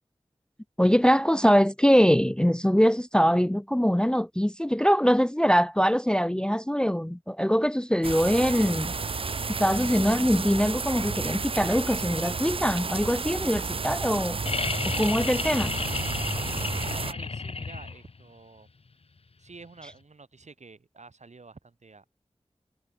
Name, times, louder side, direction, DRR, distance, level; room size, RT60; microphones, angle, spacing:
voice 1, 0.8-8.9 9.6-14.4 15.0-15.7, equal, 5° left, 0.4 m, -23 dB
sound 1, 8.0-17.1, right 4 dB, 55° right, 0.5 m, -32 dB
sound 2, 14.5-18.2 19.9-20.0, left 4 dB, 60° left, 0.8 m, -32 dB
voice 2, 16.8-18.7 19.4-22.1, right 4 dB, 85° right, 7.5 m, -49 dB
wide cardioid pair, 75°, 12 cm